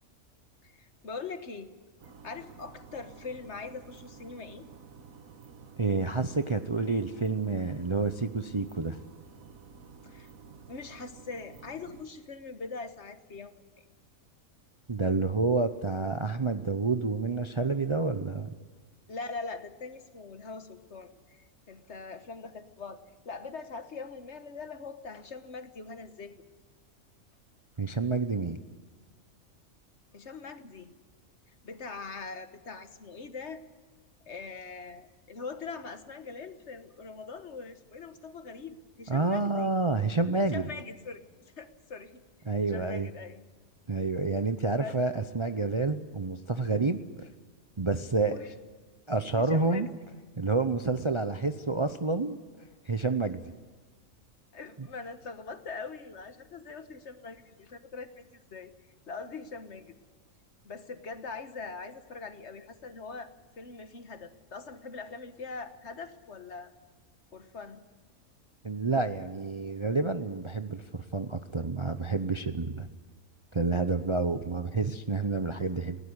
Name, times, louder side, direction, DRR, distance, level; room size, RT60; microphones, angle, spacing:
voice 1, 0.6-1.7 2.2-4.7 10.0-10.3 10.7-13.9 19.1-26.4 30.1-30.9 31.6-33.6 34.3-39.7 40.5-42.2 42.6-43.4 44.8-45.0 48.3-48.5 49.4-49.9 54.5-58.7 59.1-59.8 60.6-63.3 63.6-66.7 67.3-67.8, left 4 dB, 55° left, 9 dB, 1.5 m, -42 dB
sound 1, 2.0-12.0, right 5 dB, 75° right, 1.7 m, -51 dB
voice 2, 5.8-9.0 14.9-18.5 27.8-28.6 39.1-40.7 42.5-43.1 43.9-47.3 47.8-48.3 49.1-49.9 50.4-52.4 52.9-53.5 54.8-54.9 68.6-72.9 73.5-76.0, right 3 dB, 30° right, 9 dB, 0.6 m, -29 dB
20.5 x 17.5 x 9.6 m, 1.4 s
omnidirectional pair, 1.5 m